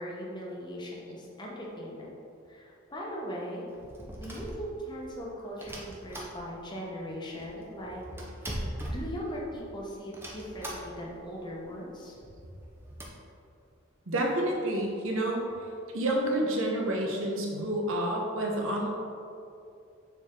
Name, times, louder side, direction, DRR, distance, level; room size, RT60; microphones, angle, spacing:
voice 1, 0.0-2.1 2.5-3.6 4.2-8.0 8.5-8.6 8.9-12.4, equal, 20° left, -4 dB, 1.0 m, -39 dB
sound 1, 3.7-5.1 5.6-6.8 7.1-7.2 7.4-9.7 10.1-11.2 11.5-11.6 11.8-12.0 12.5-13.1, right 1 dB, 10° right, 0.7 m, -40 dB
voice 2, 14.1-15.4 15.9-18.9, right 1 dB, 75° right, 0 dB, 1.1 m, -29 dB
6.8 x 4.5 x 3.7 m, 2.5 s
head